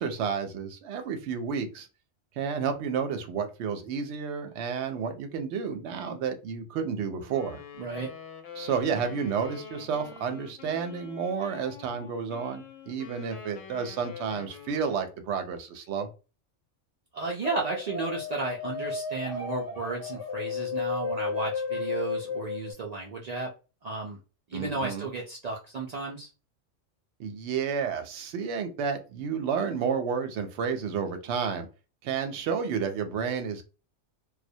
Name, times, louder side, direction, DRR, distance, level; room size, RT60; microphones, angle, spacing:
voice 1, 0.0-1.9 2.4-7.6 8.6-16.1 24.5-25.1 27.2-31.7 32.0-33.6, right 6 dB, 70° right, 0.8 m, -31 dB
Wind instrument woodwind instrument, 7.2-15.2, left 7 dB, 90° left, 1.0 m, -46 dB
voice 2, 7.8-8.1 17.1-23.5 23.8-24.2 24.5-26.3, right 3 dB, 85° right, 0.3 m, -33 dB
sound 1, 17.4-22.7, left 5 dB, 20° left, 0.5 m, -33 dB
2.2 x 2.0 x 2.6 m
omnidirectional pair, 1.2 m